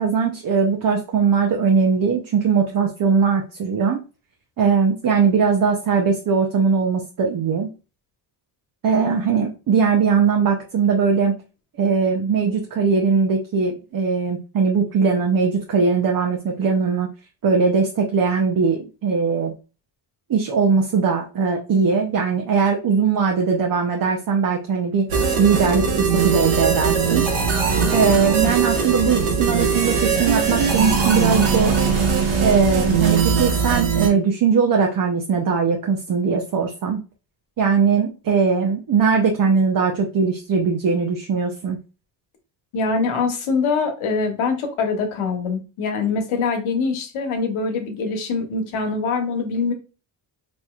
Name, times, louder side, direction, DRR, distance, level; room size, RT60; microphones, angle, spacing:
voice 1, 0.0-4.0 4.6-7.7 8.8-11.4 11.8-17.1 17.4-19.5 20.3-25.1 25.4-27.3 27.9-31.8 32.4-37.0 37.6-41.8, right 5 dB, 45° right, 2 dB, 0.7 m, -20 dB
sound 1, 25.1-34.1, right 6 dB, 80° right, 1.4 m, -20 dB
voice 2, 42.7-49.7, left 4 dB, 85° left, 4 dB, 1.2 m, -23 dB
4.3 x 3.1 x 2.4 m, 0.33 s
cardioid pair, 95°, 48 cm